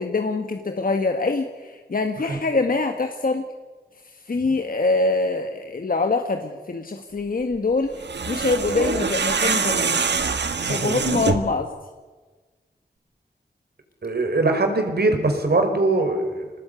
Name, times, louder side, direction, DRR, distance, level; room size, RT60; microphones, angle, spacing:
voice 1, 0.0-3.5 4.3-7.9 8.3-10.0 10.6-11.7, left 3 dB, 55° left, 5 dB, 1.7 m, -24 dB
sound 1, 7.9-11.6, right 5 dB, 90° right, 1.7 m, -24 dB
voice 2, 10.6-11.0 14.0-16.5, right 2 dB, 70° right, 5 dB, 5.1 m, -22 dB
25.5 x 19.0 x 9.4 m, 1.3 s
cardioid pair, 55°, 17 cm